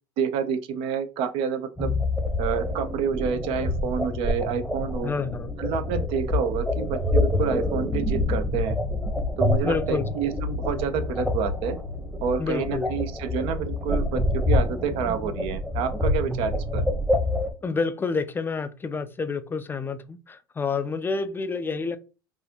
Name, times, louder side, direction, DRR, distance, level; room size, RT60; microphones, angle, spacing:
voice 1, 0.2-1.9 2.4-5.1 5.6-8.8 9.4-11.8 12.2-16.8, right 7 dB, 60° right, 0.6 m, -28 dB
sound 1, 1.8-17.5, left 2 dB, 5° right, 0.9 m, -27 dB
voice 2, 5.0-5.5 9.6-10.1 12.4-12.9 17.6-22.0, left 4 dB, 20° left, 0.4 m, -28 dB
4.0 x 2.4 x 2.8 m
hypercardioid pair, 90°, 11 cm